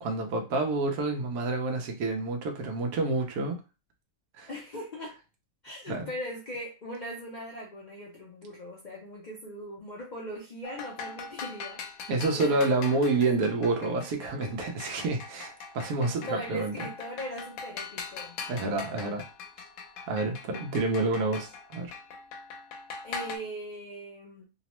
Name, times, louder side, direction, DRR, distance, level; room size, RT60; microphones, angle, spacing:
voice 1, 0.0-3.6 4.4-4.5 5.9-6.1 12.1-16.9 18.5-19.2 20.1-21.9, right 3 dB, 85° right, 3 dB, 1.2 m, -28 dB
voice 2, 4.5-5.2 5.6-11.8 12.3-13.0 16.2-18.4 23.0-24.5, equal, 60° left, -3 dB, 0.4 m, -40 dB
sound 1, 10.6-23.4, left 5 dB, 80° left, 1.0 m, -42 dB
3.0 x 2.0 x 2.9 m, 0.31 s
omnidirectional pair, 1.5 m